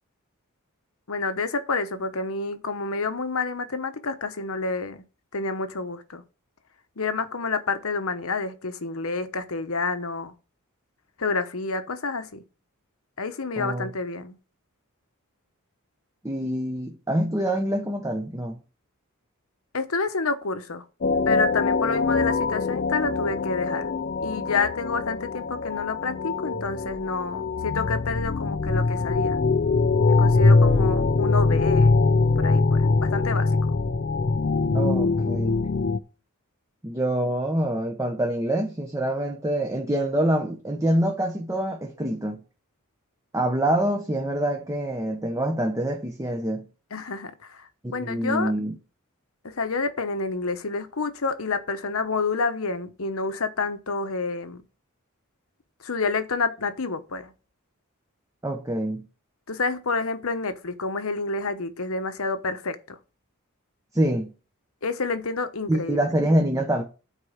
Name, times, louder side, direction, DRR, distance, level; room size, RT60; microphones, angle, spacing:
voice 1, 1.1-5.0 5.3-6.2 7.0-10.3 11.2-12.4 13.2-14.3 19.7-20.8 21.3-23.9 24.2-29.4 30.1-32.0 32.4-33.5 46.9-48.5 49.4-54.6 55.8-57.3 59.5-63.0 64.8-66.1, left 4 dB, 70° left, 1.1 m, -29 dB
voice 2, 13.6-13.9 16.2-18.6 30.7-30.9 34.7-35.6 36.8-42.4 43.3-46.7 47.8-48.7 58.4-59.1 63.9-64.3 65.7-66.8, right 1 dB, 15° right, 0.9 m, -26 dB
sound 1, 21.0-36.0, left 3 dB, 45° left, 0.5 m, -22 dB
8.2 x 4.7 x 7.3 m
head